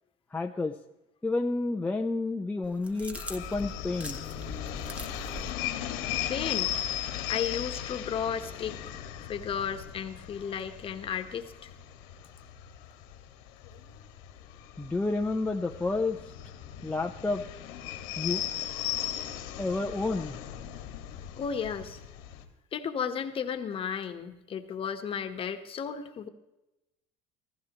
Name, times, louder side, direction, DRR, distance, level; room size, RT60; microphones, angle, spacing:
voice 1, 0.3-0.7 1.2-4.2 14.8-16.2 16.8-17.4 18.2-18.4 19.6-20.4, left 3 dB, 10° left, 2 dB, 0.7 m, -30 dB
sound 1, 2.6-5.5, equal, 10° right, 1.3 m, -41 dB
sound 2, 3.1-22.4, left 11 dB, 90° left, 1.8 m, -37 dB
voice 2, 6.3-6.7 7.3-8.8 9.3-11.7 21.4-22.0 22.7-26.3, left 7 dB, 40° left, 7 dB, 1.2 m, -34 dB
15.0 x 15.0 x 3.0 m, 0.95 s
supercardioid pair, 110°, 14 cm